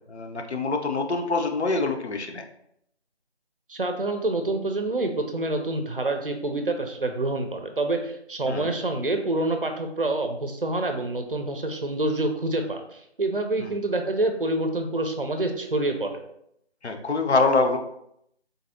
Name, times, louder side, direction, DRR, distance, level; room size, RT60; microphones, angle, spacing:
voice 1, 0.1-2.4 8.5-8.7 16.8-17.8, left 3 dB, 75° left, 5 dB, 0.6 m, -25 dB
voice 2, 3.7-16.1, right 2 dB, 55° right, 5 dB, 0.5 m, -27 dB
3.9 x 2.6 x 2.6 m, 0.74 s
figure-of-eight pair, 165°, 34 cm